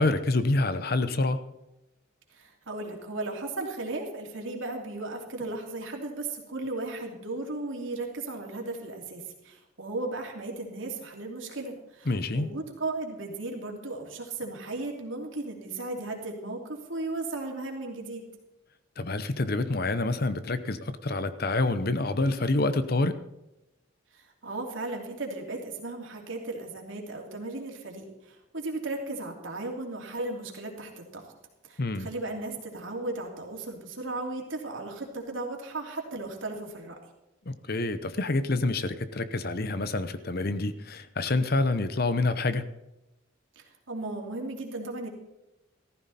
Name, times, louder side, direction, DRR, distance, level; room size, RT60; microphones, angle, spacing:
voice 1, 0.0-1.4 12.1-12.5 19.0-23.2 31.8-32.1 37.5-42.7, left 2 dB, 50° left, 12 dB, 0.8 m, -27 dB
voice 2, 2.3-18.3 24.1-31.3 31.6-37.0 43.6-45.1, right 2 dB, 75° right, 1 dB, 2.9 m, -36 dB
15.0 x 14.0 x 4.3 m, 0.94 s
head